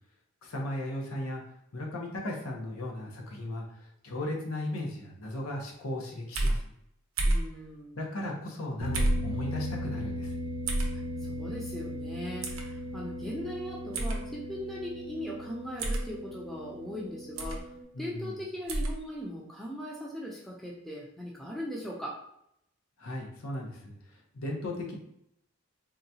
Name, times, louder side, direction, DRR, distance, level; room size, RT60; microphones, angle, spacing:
voice 1, 0.4-1.4 1.7-3.6 4.0-6.6 7.9-10.3 17.9-18.3 23.0-23.9 24.3-24.9, left 1 dB, 85° left, 0 dB, 0.7 m, -36 dB
sound 1, 6.3-6.6 7.2-7.5 8.9-9.2 10.7-10.9 12.4-12.6 13.9-14.2 15.8-16.1 17.4-17.6 18.7-18.9, right 1 dB, 75° right, 0.6 m, -28 dB
voice 2, 7.2-8.0 11.3-17.6 18.0-22.2, equal, ahead, -4 dB, 0.4 m, -39 dB
sound 2, 8.8-17.8, left 1 dB, 45° left, 0.9 m, -38 dB
3.7 x 2.2 x 2.7 m, 0.75 s
head